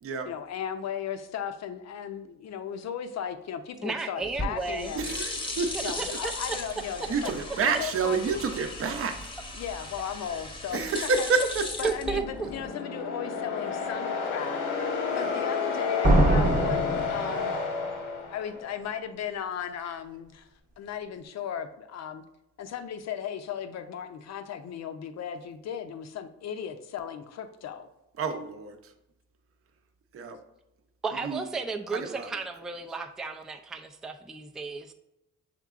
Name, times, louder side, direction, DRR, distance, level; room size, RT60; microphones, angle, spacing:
voice 1, 0.2-5.2 5.8-7.3 7.6-8.4 9.5-11.3 11.8-14.6 15.2-17.6 18.3-20.5 20.8-22.2 22.6-27.9, left 8 dB, 60° left, 8 dB, 0.6 m, -36 dB
voice 2, 3.8-4.9 5.7-6.6 7.0-7.1 11.8-12.2 31.0-34.9, right 4 dB, ahead, 4 dB, 0.3 m, -33 dB
sound 1, 4.2-12.7, left 1 dB, 15° left, 0.8 m, -37 dB
voice 3, 4.9-6.2 7.1-9.2 10.7-11.9 15.1-15.4 28.2-28.9 30.1-30.4 31.2-31.4 31.9-32.3, right 4 dB, 50° right, 7 dB, 0.6 m, -29 dB
sound 2, 11.7-18.8, left 5 dB, 90° left, 1.2 m, -31 dB
sound 3, 16.0-17.9, right 1 dB, 25° right, 0.9 m, -23 dB
5.9 x 3.6 x 2.4 m, 0.86 s
cardioid pair, 90°, 30 cm